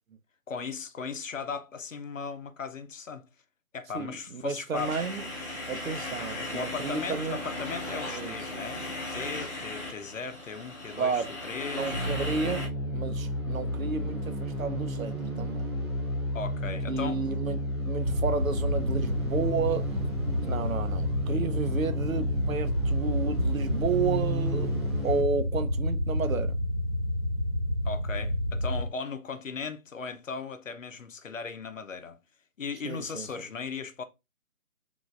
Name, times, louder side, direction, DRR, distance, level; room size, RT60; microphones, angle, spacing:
voice 1, 0.5-3.3 3.7-4.9 6.4-12.0 16.3-17.2 27.8-32.2 32.6-34.0, left 5 dB, 65° left, 0.8 m, -37 dB
voice 2, 3.9-5.3 5.7-7.4 8.1-8.4 11.0-11.3 11.7-15.6 16.9-20.0 20.4-26.6 32.8-33.3, right 5 dB, 70° right, 0.7 m, -32 dB
sound 1, 4.7-12.7, left 1 dB, 10° left, 0.9 m, -37 dB
sound 2, 11.9-25.2, equal, 20° right, 0.6 m, -32 dB
sound 3, 18.0-28.9, left 1 dB, 45° right, 1.0 m, -30 dB
4.9 x 3.8 x 2.4 m
figure-of-eight pair, 155°, 42 cm